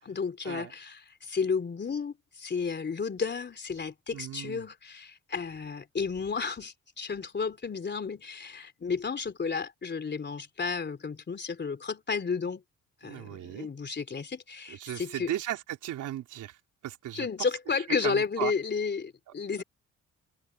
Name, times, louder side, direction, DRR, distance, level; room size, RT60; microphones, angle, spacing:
voice 1, 0.0-12.6 13.0-15.3 17.1-19.6, left 5 dB, 35° left, 3.4 m, -32 dB
voice 2, 4.1-4.6 13.0-13.7 14.7-16.6 16.8-17.3 18.0-18.5, right 13 dB, 80° right, 4.1 m, -36 dB
open air
cardioid pair, 90°, 30 cm